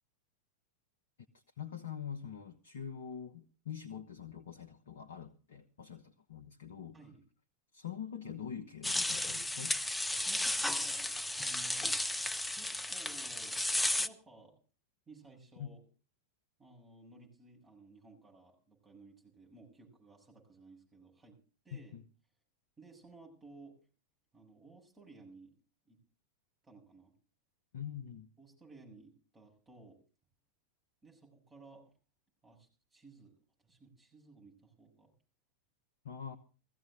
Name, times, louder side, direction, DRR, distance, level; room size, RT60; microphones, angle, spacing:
voice 1, 1.6-7.0 7.7-9.8 15.6-15.7 21.7-22.0 27.7-28.3 36.0-36.4, left 8 dB, 65° left, 1.1 m, -44 dB
sound 1, 8.8-14.1, left 1 dB, 5° left, 0.7 m, -34 dB
voice 2, 10.2-11.9 12.5-13.7 14.0-14.5 15.1-15.8 16.6-21.4 21.6-21.9 22.8-23.8 24.3-25.6 25.9-26.0 26.6-27.1 28.4-30.0 31.0-31.9 32.4-33.3 33.6-35.1, right 3 dB, 15° right, 7.1 m, -57 dB
18.0 x 15.5 x 3.8 m
figure-of-eight pair, 90°, 0 cm